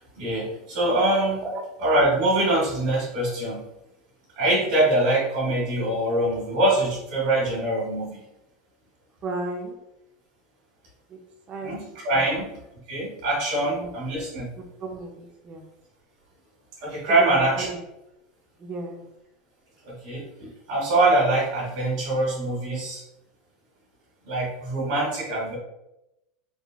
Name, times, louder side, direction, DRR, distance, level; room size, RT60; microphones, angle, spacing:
voice 1, 0.2-1.5 1.8-3.6 4.4-8.2 11.6-12.5 12.9-14.5 16.8-17.7 19.8-23.0 24.3-25.6, right 1 dB, 65° right, -6 dB, 1.4 m, -24 dB
voice 2, 9.2-9.8 11.1-11.2 11.5-11.7 12.1-12.4 13.6-13.9 14.8-15.7 17.2-17.8 18.6-19.0 22.7-22.8, right 2 dB, 35° right, 2 dB, 0.5 m, -34 dB
3.5 x 2.4 x 2.3 m, 0.89 s
supercardioid pair, 125°, 4 cm